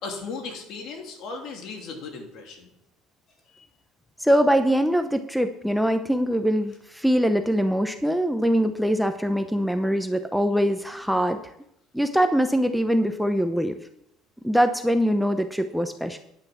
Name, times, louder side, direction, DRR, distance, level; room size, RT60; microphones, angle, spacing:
voice 1, 0.0-2.7 3.5-3.6, left 4 dB, 60° left, 2 dB, 3.0 m, -36 dB
voice 2, 4.2-11.5 11.9-13.8 14.4-16.2, equal, ahead, 7 dB, 0.8 m, -23 dB
10.5 x 6.7 x 7.0 m, 0.75 s
supercardioid pair, 105°, 0 cm